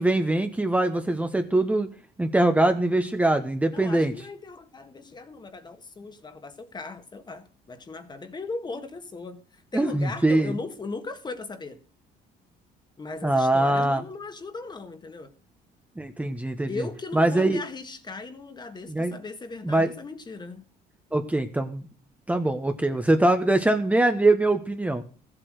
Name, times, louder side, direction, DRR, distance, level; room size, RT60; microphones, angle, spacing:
voice 1, 0.0-1.9 2.2-4.1 9.7-10.5 13.2-14.0 16.0-16.8 17.1-17.6 18.9-19.1 19.6-19.9 21.1-21.8 22.3-25.0, right 2 dB, 10° right, 1.1 m, -23 dB
voice 2, 3.7-11.8 13.0-15.3 16.7-20.7, left 3 dB, 25° left, 1.6 m, -38 dB
14.5 x 7.9 x 6.4 m
cardioid pair, 110°, 17 cm